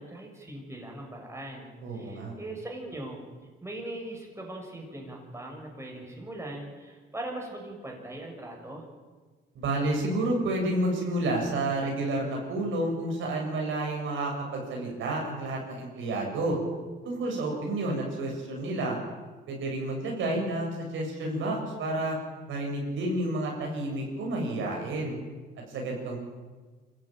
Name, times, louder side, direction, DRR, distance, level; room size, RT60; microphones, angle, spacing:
voice 1, 0.0-3.2 3.6-8.8, right 1 dB, 15° right, 0 dB, 6.9 m, -40 dB
voice 2, 1.8-2.3 9.5-16.6 17.0-19.0 19.5-22.2 22.5-25.2 25.7-26.2, right 1 dB, 80° right, 0 dB, 7.5 m, -30 dB
25.5 x 15.5 x 9.1 m, 1.4 s
cardioid pair, 90°, 20 cm